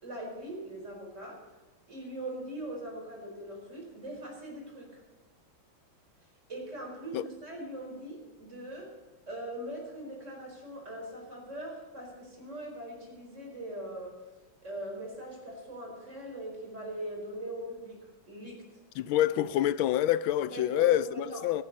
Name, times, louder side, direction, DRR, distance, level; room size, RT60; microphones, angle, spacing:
voice 1, 0.0-1.5 1.9-5.0 6.5-8.9 9.3-14.2 14.6-18.8 20.4-21.4, right 1 dB, 35° right, 4.7 m, -41 dB
voice 2, 19.0-21.6, left 13 dB, 90° left, 1.4 m, -27 dB
16.0 x 14.0 x 4.0 m
omnidirectional pair, 2.2 m